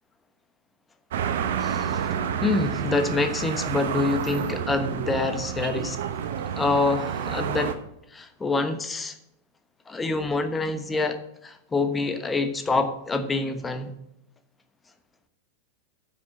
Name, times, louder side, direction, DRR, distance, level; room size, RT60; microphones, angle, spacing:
sound 1, 1.1-7.7, right 8 dB, 55° right, 1.0 m, -29 dB
voice 1, 1.6-2.1 2.4-6.0 6.6-7.7 8.1-9.2 9.9-13.9, left 3 dB, 15° left, 9 dB, 1.1 m, -26 dB
9.1 x 6.3 x 6.6 m, 0.81 s
figure-of-eight pair, 90°, 0 cm